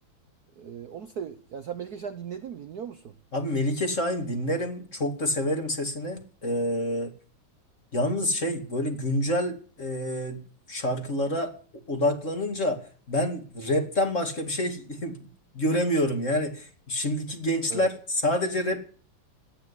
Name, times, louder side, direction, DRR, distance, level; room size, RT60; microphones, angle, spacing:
voice 1, 0.6-3.2 17.7-17.9, right 7 dB, 55° right, 8 dB, 1.2 m, -37 dB
voice 2, 3.3-7.1 7.9-10.4 10.7-11.5 11.9-12.8 13.1-15.3 15.5-18.8, left 1 dB, 35° left, 5 dB, 2.7 m, -27 dB
13.0 x 9.8 x 9.9 m, 0.43 s
omnidirectional pair, 2.4 m